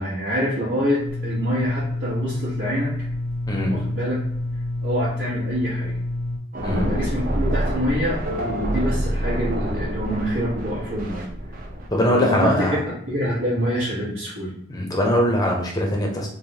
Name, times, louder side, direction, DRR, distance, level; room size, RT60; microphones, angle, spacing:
voice 1, 0.0-2.9 3.7-4.2 4.8-6.0 6.7-11.6 12.1-14.5, equal, 85° right, -9 dB, 0.9 m, -26 dB
sound 1, 1.0-6.4, left 2 dB, 75° left, 0.6 m, -28 dB
sound 2, 6.5-11.9, equal, 45° right, 0.4 m, -26 dB
voice 2, 11.9-12.8 14.7-16.3, equal, 20° left, 0 dB, 0.5 m, -21 dB
3.2 x 2.0 x 2.7 m, 0.68 s
head